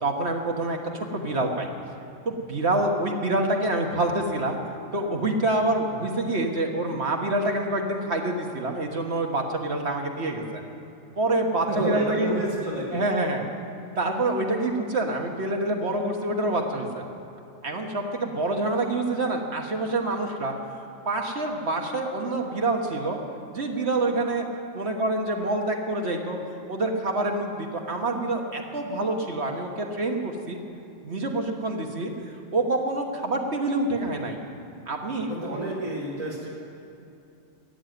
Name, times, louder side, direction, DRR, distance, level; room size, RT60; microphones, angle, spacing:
voice 1, 0.0-1.7 2.2-4.6 4.9-10.6 11.2-12.3 12.9-13.5 14.0-17.0 17.6-20.6 21.0-23.2 23.5-24.4 24.7-26.4 26.7-30.6 31.0-32.1 32.5-34.4 34.9-35.3, right 2 dB, 55° right, 2 dB, 1.6 m, -26 dB
voice 2, 11.7-13.0 35.2-36.5, right 1 dB, 85° right, -6 dB, 2.3 m, -29 dB
14.0 x 9.1 x 9.2 m, 2.7 s
omnidirectional pair, 1.4 m